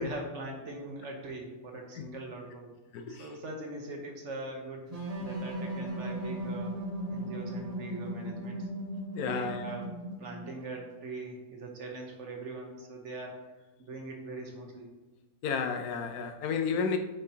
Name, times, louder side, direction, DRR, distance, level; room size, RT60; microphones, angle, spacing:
voice 1, 0.0-2.7 3.1-6.7 7.1-8.7 9.2-13.4 13.8-14.9, right 2 dB, 55° right, 1 dB, 1.1 m, -42 dB
voice 2, 2.9-3.3 9.1-9.7 15.4-17.0, left 6 dB, 75° left, 5 dB, 1.1 m, -32 dB
sound 1, 4.9-10.5, right 1 dB, 30° right, 0.9 m, -37 dB
7.7 x 4.4 x 2.8 m, 1.1 s
omnidirectional pair, 1.6 m